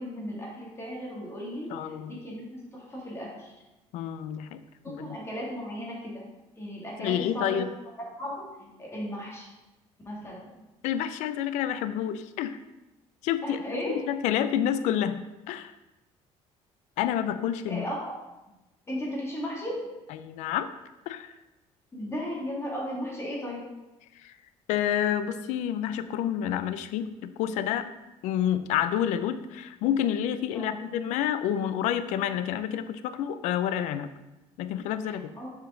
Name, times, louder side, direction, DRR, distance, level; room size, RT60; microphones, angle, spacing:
voice 1, 0.0-3.5 4.8-7.6 8.2-9.5 10.0-10.5 13.4-14.0 17.7-18.1 18.9-19.9 21.9-23.6 30.5-30.7 35.1-35.5, equal, 20° left, -3 dB, 2.4 m, -36 dB
voice 2, 1.7-2.2 3.9-4.6 4.9-5.2 7.0-7.7 10.8-12.6 13.2-13.6 13.9-15.7 17.0-17.8 20.1-20.7 21.1-21.3 24.1-24.3 24.7-27.9 28.2-34.1 34.6-35.3, left 10 dB, 85° left, 12 dB, 0.4 m, -29 dB
7.0 x 5.1 x 3.8 m, 1.0 s
cardioid pair, 105°, 12 cm